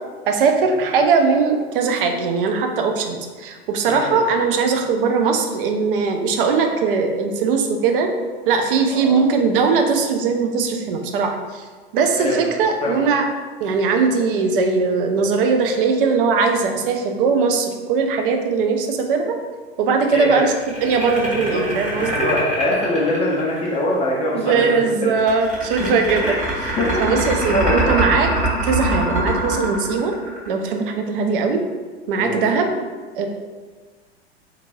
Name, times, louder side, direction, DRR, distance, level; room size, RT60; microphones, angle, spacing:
voice 1, 0.3-8.1 8.5-11.7 11.9-13.3 13.6-19.4 19.8-20.5 20.8-22.3 24.3-26.4 26.6-28.3 28.6-30.1 30.5-31.6 32.1-32.8 33.2-33.3, right 5 dB, 60° right, 4 dB, 0.5 m, -20 dB
voice 2, 3.8-4.3 8.9-9.2 12.2-12.5 12.8-13.0 20.1-20.5 21.5-21.6 21.9-25.1 25.8-26.4 26.8-27.0 27.5-28.1 32.1-32.6, left 1 dB, 20° left, -4 dB, 0.5 m, -23 dB
sound 1, 20.6-23.7 25.2-30.7, right 1 dB, 25° right, 1.4 m, -24 dB
2.9 x 2.5 x 2.6 m, 1.4 s
figure-of-eight pair, 90°, 32 cm